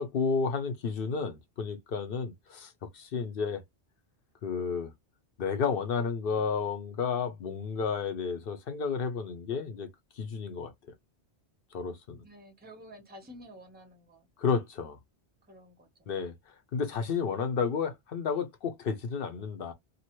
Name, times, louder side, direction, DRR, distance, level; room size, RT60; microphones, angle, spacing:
voice 1, 0.0-3.6 4.4-4.9 5.4-9.9 10.2-10.7 11.7-12.2 14.4-15.0 16.1-16.3 16.7-19.7, left 5 dB, 60° left, 0.9 m, -31 dB
voice 2, 12.2-14.3 15.5-16.1, equal, 10° right, 0.8 m, -51 dB
2.7 x 2.4 x 2.9 m
omnidirectional pair, 1.1 m